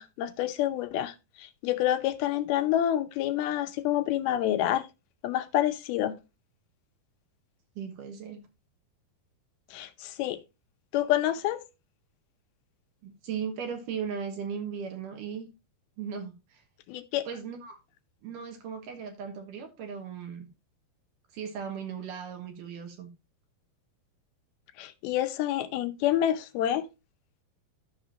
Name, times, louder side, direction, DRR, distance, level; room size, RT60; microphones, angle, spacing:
voice 1, 0.0-4.8 5.2-6.2 9.7-10.4 10.9-11.6 16.9-17.3 24.8-26.9, left 12 dB, 80° left, 2.6 m, -28 dB
voice 2, 7.8-8.4 13.0-15.5 16.0-16.6 17.3-17.8 18.2-20.5 21.3-23.1, right 7 dB, 65° right, 2.6 m, -37 dB
12.5 x 5.9 x 2.8 m
omnidirectional pair, 4.4 m